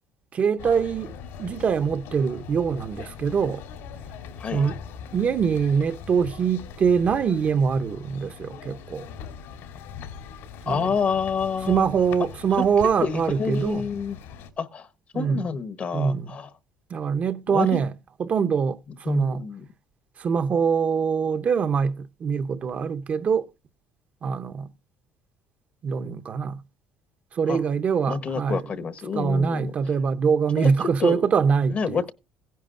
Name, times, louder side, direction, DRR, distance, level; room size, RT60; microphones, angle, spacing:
voice 1, 0.3-3.6 4.5-4.8 5.1-9.1 10.7-10.9 11.7-13.8 15.1-15.5 15.9-16.4 16.9-17.9 18.2-19.4 20.2-23.4 24.2-24.7 25.8-26.6 27.3-28.6 29.1-32.0, right 6 dB, 35° right, 0.8 m, -24 dB
sound 1, 0.6-14.5, left 7 dB, 75° left, 3.3 m, -41 dB
voice 2, 10.7-11.9 12.6-12.7 13.0-14.2 14.6-14.9 15.1-16.5 17.5-17.7 19.1-19.6 27.5-27.6 28.1-29.7 30.6-30.7 31.0-31.2 31.7-32.1, left 6 dB, 35° left, 1.0 m, -28 dB
16.5 x 10.5 x 2.5 m
cardioid pair, 145°, 4 cm